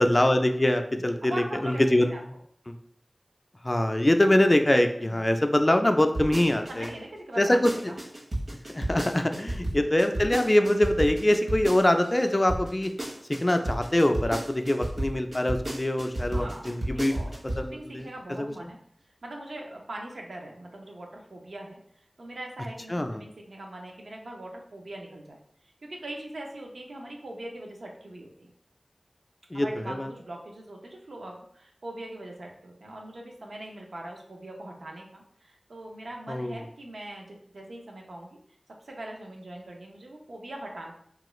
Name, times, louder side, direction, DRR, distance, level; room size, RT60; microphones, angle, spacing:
voice 1, 0.0-2.2 2.7-2.8 3.6-6.9 7.4-7.7 8.7-12.9 13.4-17.1 17.6-18.1 22.9-23.2 29.5-30.1 36.3-36.6, left 1 dB, 30° left, 6 dB, 0.3 m, -23 dB
voice 2, 0.9-2.2 5.0-5.2 6.7-8.0 9.4-9.7 16.3-17.3 17.6-18.8 19.1-25.4 25.8-28.5 29.5-38.4 38.8-40.9, right 1 dB, 90° right, 0 dB, 0.5 m, -41 dB
sound 1, 6.1-6.9 7.3-12.2 12.5-17.7 18.0-18.1, right 1 dB, 70° right, 0.9 m, -32 dB
3.0 x 2.4 x 3.0 m, 0.66 s
wide cardioid pair, 60°, 0 cm